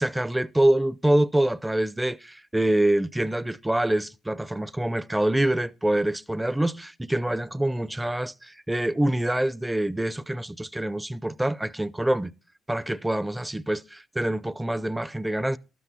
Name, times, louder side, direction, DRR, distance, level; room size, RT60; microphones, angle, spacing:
voice 1, 0.0-12.3 12.7-15.6, right 1 dB, 10° right, 0.5 m, -25 dB
12.0 x 8.4 x 4.0 m
cardioid pair, 90°, 0 cm